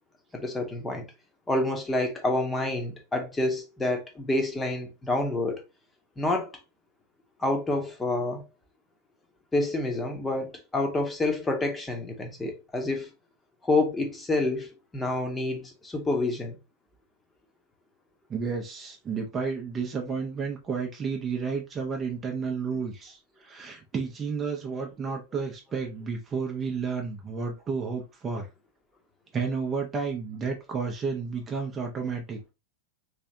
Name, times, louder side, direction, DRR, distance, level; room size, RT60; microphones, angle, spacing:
voice 1, 0.3-1.1 1.5-5.6 6.2-6.6 7.4-8.4 9.5-13.1 13.6-16.6, left 2 dB, 15° left, 1.0 m, -28 dB
voice 2, 18.3-28.5 29.3-32.4, right 5 dB, 25° right, 0.8 m, -31 dB
3.3 x 3.3 x 2.7 m
figure-of-eight pair, 90°, 0 cm